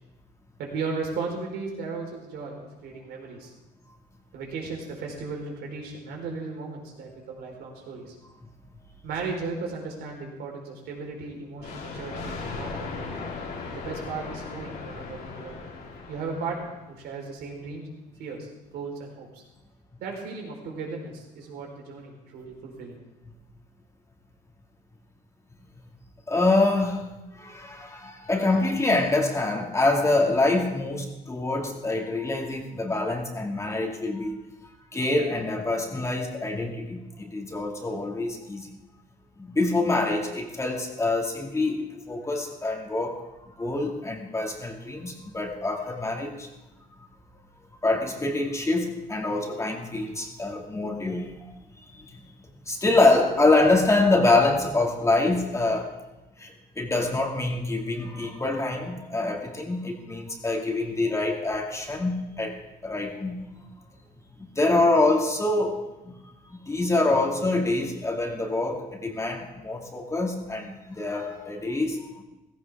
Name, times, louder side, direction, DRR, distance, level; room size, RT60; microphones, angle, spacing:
voice 1, 0.6-3.5 4.3-8.1 9.0-13.3 13.7-15.6 16.1-17.9 18.2-19.4 20.0-23.0, right 4 dB, 75° right, 0 dB, 4.2 m, -36 dB
Thunder, 11.6-16.9, left 4 dB, 70° left, 3.0 m, -37 dB
voice 2, 26.3-27.1 27.4-34.4 34.9-38.7 39.4-43.3 43.6-46.5 47.8-51.4 52.0-52.2 52.7-55.9 56.4-63.4 64.6-66.1 66.6-72.2, left 2 dB, 15° left, 1 dB, 2.2 m, -25 dB
16.0 x 16.0 x 3.6 m, 1.0 s
cardioid pair, 110°, 17 cm